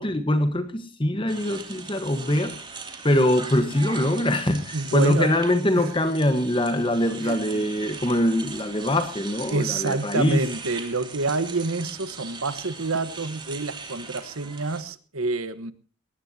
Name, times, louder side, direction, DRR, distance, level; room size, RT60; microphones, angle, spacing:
voice 1, 0.0-2.5 3.0-10.5, left 1 dB, 25° left, 10 dB, 1.3 m, -23 dB
sound 1, 1.3-14.8, right 4 dB, 20° right, 2.7 m, -40 dB
voice 2, 4.7-5.4 5.7-5.9 7.2-7.6 9.5-15.7, right 3 dB, 75° right, 13 dB, 1.3 m, -28 dB
20.0 x 18.5 x 2.8 m, 0.39 s
head